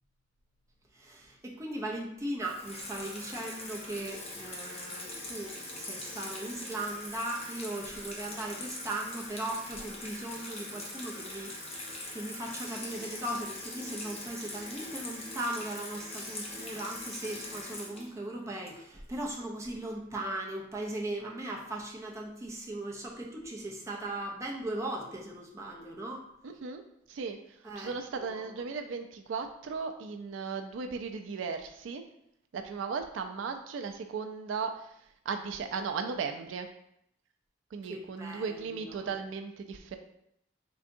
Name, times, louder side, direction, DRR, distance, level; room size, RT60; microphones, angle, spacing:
voice 1, 0.9-26.2 27.6-27.9 28.2-28.7 37.8-39.1, right 1 dB, 15° right, -2 dB, 0.5 m, -38 dB
Water tap faucet / Sink (filling or washing), 2.4-19.1, left 2 dB, 35° left, 0.7 m, -42 dB
voice 2, 26.4-26.8 27.1-32.0 32.5-34.9 35.3-36.7 37.7-40.0, right 5 dB, 75° right, 6 dB, 0.4 m, -36 dB
3.8 x 3.4 x 2.6 m, 0.74 s
head